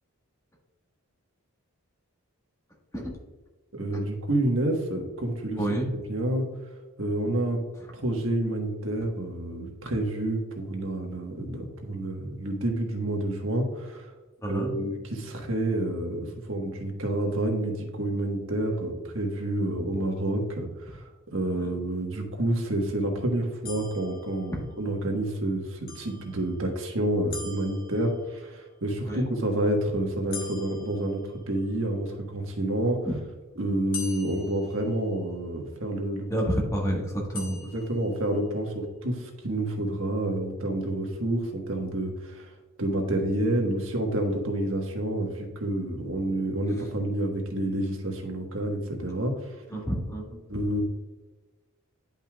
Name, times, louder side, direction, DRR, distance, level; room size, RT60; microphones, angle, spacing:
voice 1, 3.7-5.6 6.1-6.5 7.0-7.6 7.9-14.1 14.5-33.0 33.6-36.3 37.7-42.5 42.8-49.6 50.5-50.8, right 1 dB, 65° right, 2 dB, 1.4 m, -29 dB
voice 2, 5.6-5.9 14.4-14.7 21.6-21.7 29.1-29.3 33.0-33.1 36.3-37.6 49.7-50.4, equal, 15° left, -1 dB, 1.5 m, -29 dB
sound 1, 23.6-25.0 25.9-26.8 27.3-28.5 30.3-31.8 33.9-35.5 37.3-38.5, left 4 dB, 40° left, 1.1 m, -43 dB
10.5 x 5.5 x 2.4 m, 1.2 s
head